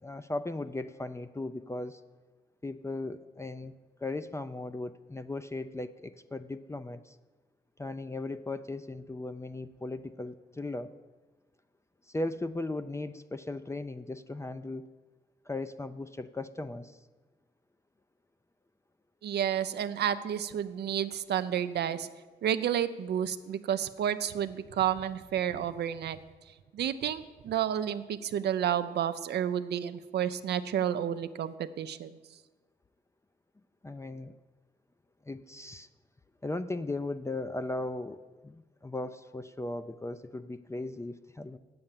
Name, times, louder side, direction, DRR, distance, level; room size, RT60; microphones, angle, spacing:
voice 1, 0.0-2.0 2.6-3.7 4.0-7.1 7.8-10.9 12.1-14.9 15.5-17.0 33.8-34.3 35.3-35.9 36.4-41.6, left 2 dB, 15° left, 11 dB, 0.4 m, -37 dB
voice 2, 19.2-22.1 22.4-26.2 26.7-32.1, right 9 dB, 80° right, 11 dB, 0.5 m, -31 dB
8.6 x 7.8 x 7.3 m, 1.3 s
cardioid pair, 70°, 17 cm